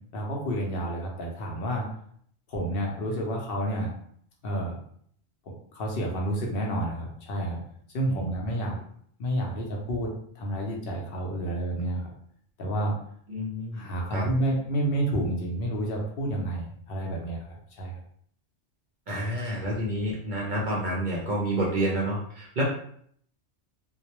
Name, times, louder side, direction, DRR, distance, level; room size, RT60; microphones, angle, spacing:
voice 1, 0.1-1.9 2.5-3.9 4.4-4.8 5.7-7.6 7.9-8.8 9.2-10.1 10.4-12.1 12.6-12.9 13.7-18.0, right 1 dB, 60° left, -1 dB, 0.7 m, -29 dB
voice 2, 8.1-8.4 13.3-13.8 14.1-14.3 19.1-22.6, right 1 dB, 55° right, -4 dB, 0.6 m, -29 dB
2.2 x 2.0 x 2.8 m, 0.63 s
omnidirectional pair, 1.2 m